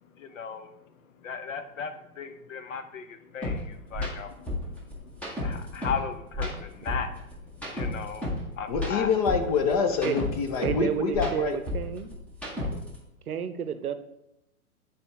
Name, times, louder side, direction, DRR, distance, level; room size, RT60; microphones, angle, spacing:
voice 1, 0.0-9.1 12.6-12.8, left 6 dB, 60° left, 9 dB, 0.8 m, -37 dB
sound 1, 3.4-3.6 3.9-4.1 4.5-6.0 6.3-8.4 8.7-10.8 11.1-13.0, left 2 dB, 5° left, 0.8 m, -32 dB
voice 2, 8.7-11.6, left 5 dB, 25° left, 5 dB, 0.5 m, -26 dB
voice 3, 10.6-12.1 13.3-13.9, right 8 dB, 75° right, 11 dB, 0.7 m, -30 dB
9.1 x 4.4 x 3.2 m, 0.87 s
figure-of-eight pair, 120°, 45 cm